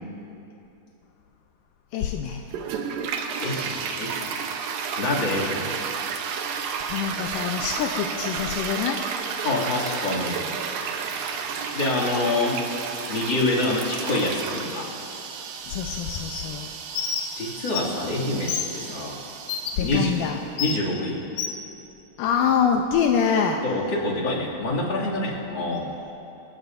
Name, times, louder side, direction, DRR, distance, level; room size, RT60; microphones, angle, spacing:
voice 1, 1.9-2.5 6.6-9.0 15.7-16.7 18.8-19.0 19.7-20.4 22.2-23.6 25.8-25.9, left 7 dB, 80° left, 3 dB, 2.0 m, -25 dB
Toilet flush, 2.5-20.4, right 6 dB, 70° right, 2.5 m, -32 dB
voice 2, 3.4-4.4 5.0-5.7 9.4-10.5 11.7-12.6 12.9-14.9 17.4-19.2 19.8-20.1 20.6-21.2 23.6-25.9, left 2 dB, 35° left, -6 dB, 2.8 m, -26 dB
Bird, 16.9-17.3 17.7-17.8 18.5-18.7 19.5-19.7 20.6-20.8 21.4-21.6, left 8 dB, 65° left, 2.0 m, -27 dB
28.0 x 16.5 x 2.7 m, 2.9 s
omnidirectional pair, 4.5 m